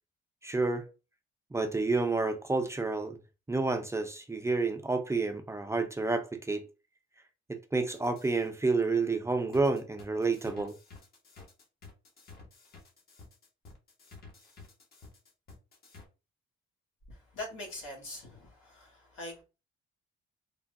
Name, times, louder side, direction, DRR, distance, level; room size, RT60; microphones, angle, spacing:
voice 1, 0.4-0.9 1.5-3.2 3.5-6.7 7.5-10.8, right 3 dB, 15° right, 0.4 m, -29 dB
sound 1, 7.9-8.5 9.5-16.0, left 4 dB, 50° left, 1.0 m, -52 dB
voice 2, 17.1-19.4, left 1 dB, 85° left, 1.3 m, -43 dB
3.3 x 2.2 x 2.5 m
cardioid pair, 90°, 20 cm